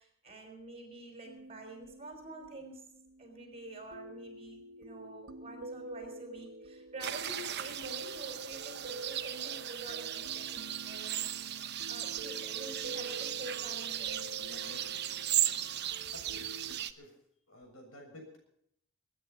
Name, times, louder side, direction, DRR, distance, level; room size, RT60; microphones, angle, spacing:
voice 1, 0.0-2.9 3.2-11.3 11.9-15.2, right 2 dB, 30° right, 4 dB, 5.2 m, -48 dB
sound 1, 1.2-16.8, right 1 dB, 70° right, 1.2 m, -48 dB
sound 2, 7.0-16.9, right 12 dB, 55° right, 0.9 m, -36 dB
voice 2, 16.1-17.2 17.5-18.4, left 1 dB, 85° left, 2 dB, 7.2 m, -52 dB
21.5 x 10.0 x 5.5 m, 0.70 s
head